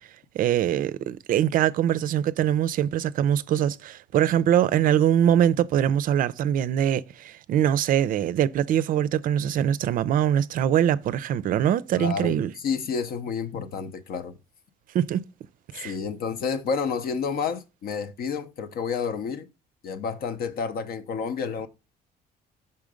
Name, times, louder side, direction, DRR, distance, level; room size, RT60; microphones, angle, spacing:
voice 1, 0.3-12.5 14.9-15.2 15.7-15.9, right 10 dB, 55° right, 0.4 m, -23 dB
voice 2, 11.9-14.3 15.8-19.5 19.8-21.7, left 6 dB, 60° left, 0.8 m, -30 dB
5.7 x 3.7 x 5.0 m
cardioid pair, 110°, 17 cm